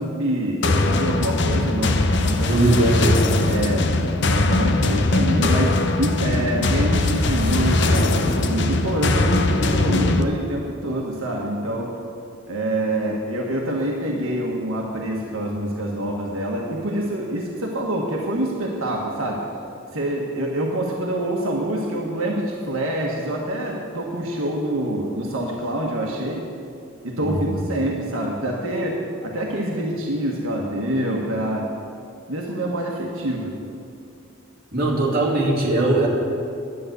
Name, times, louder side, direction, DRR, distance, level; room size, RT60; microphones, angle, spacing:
voice 1, 0.0-2.5 3.5-3.9 4.2-11.9 12.5-19.5 19.9-26.5 27.0-31.7 32.3-33.5, right 1 dB, 80° right, -1 dB, 1.4 m, -26 dB
sound 1, 0.6-10.2, left 2 dB, 55° left, 0.7 m, -20 dB
voice 2, 2.4-3.2 27.2-27.6 34.7-36.1, right 2 dB, 45° right, -4 dB, 2.6 m, -20 dB
sound 2, 7.3-9.1, equal, 85° left, 2.9 m, -31 dB
11.0 x 8.8 x 8.0 m, 2.5 s
head